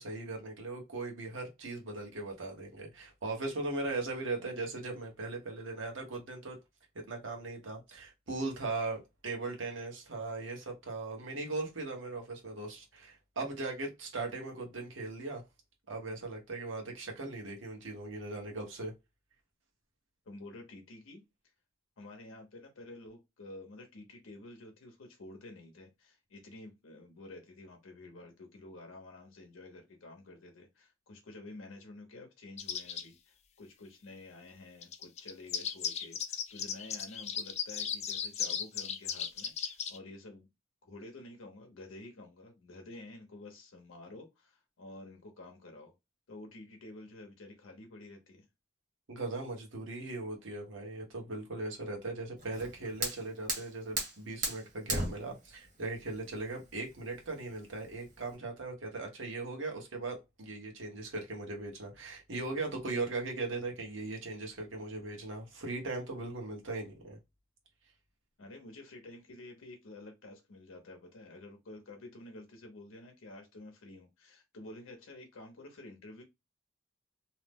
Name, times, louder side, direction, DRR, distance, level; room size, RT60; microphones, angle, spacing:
voice 1, 0.0-6.6 7.1-15.4 15.9-18.9 49.1-67.2, right 3 dB, 70° right, 1.0 m, -39 dB
voice 2, 20.3-21.2 22.0-40.5 40.8-45.9 46.3-48.5 68.4-76.2, left 2 dB, 85° left, 0.7 m, -50 dB
sound 1, 32.6-33.0 34.8-40.0, left 8 dB, 35° left, 0.3 m, -36 dB
Fire, 52.4-58.4, right 2 dB, 40° right, 1.1 m, -38 dB
2.7 x 2.0 x 3.4 m
head